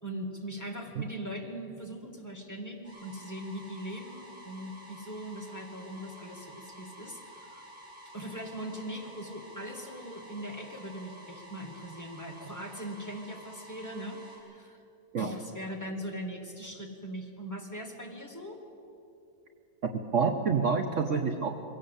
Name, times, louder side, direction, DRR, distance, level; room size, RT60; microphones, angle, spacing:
voice 1, 0.0-7.2 7.5-7.6 8.1-14.8 15.2-18.6, equal, 10° left, 1 dB, 2.2 m, -40 dB
sound 1, 2.8-14.4, equal, 80° right, 6.2 m, -50 dB
voice 2, 20.1-21.5, right 5 dB, 50° right, 5 dB, 1.2 m, -27 dB
22.5 x 17.0 x 8.4 m, 2.9 s
omnidirectional pair, 1.7 m